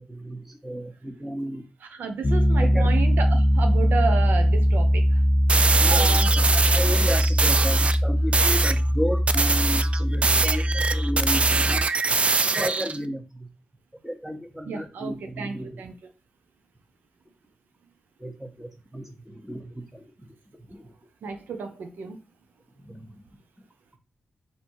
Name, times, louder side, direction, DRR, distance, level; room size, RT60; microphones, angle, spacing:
voice 1, 0.0-1.6 2.6-2.9 5.8-11.8 12.5-13.5 14.0-15.8 18.2-20.0 20.7-20.8 22.8-23.0, equal, 5° right, 1.1 m, -33 dB
voice 2, 1.9-5.1 5.9-6.4 14.7-16.1 21.2-22.2, right 5 dB, 85° right, 0.6 m, -31 dB
Piano, 2.2-11.8, equal, 30° left, 0.5 m, -21 dB
sound 1, 5.5-8.0 8.3-8.8 9.3-13.0, right 4 dB, 40° right, 0.3 m, -23 dB
3.5 x 2.8 x 4.5 m
cardioid pair, 60°, 3 cm